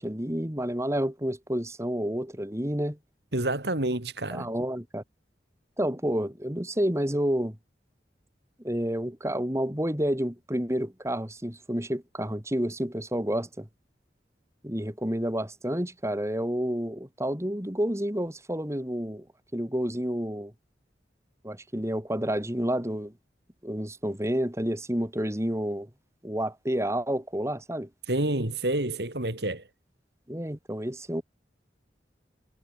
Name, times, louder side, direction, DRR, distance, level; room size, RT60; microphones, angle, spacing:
voice 1, 0.0-3.0 4.3-5.0 5.8-7.6 8.6-13.7 14.6-19.2 19.5-20.5 21.4-23.1 23.6-25.9 26.2-27.9 30.3-31.2, equal, 15° right, 3.3 m, -29 dB
voice 2, 3.3-4.5 28.1-29.6, right 1 dB, 70° right, 3.1 m, -28 dB
head